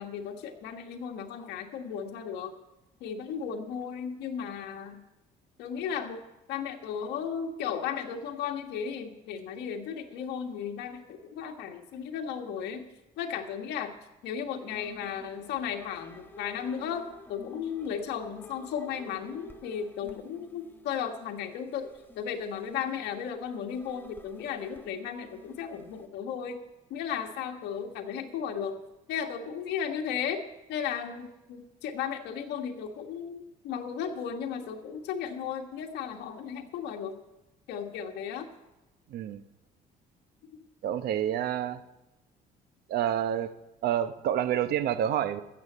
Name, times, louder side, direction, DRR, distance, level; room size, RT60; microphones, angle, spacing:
voice 1, 0.0-2.5 3.0-5.0 5.6-6.2 6.5-12.8 13.2-13.9 14.2-21.9 22.1-26.6 26.9-28.8 29.1-30.4 30.7-37.2 37.7-38.5, left 7 dB, 80° left, 3 dB, 1.5 m, -35 dB
sound 1, 14.7-26.1, left 2 dB, 10° left, 1.0 m, -51 dB
voice 2, 39.1-39.4 40.8-41.8 42.9-43.5 43.8-45.4, right 10 dB, 70° right, 12 dB, 0.9 m, -28 dB
14.5 x 7.2 x 8.0 m, 0.98 s
cardioid pair, 110°, 17 cm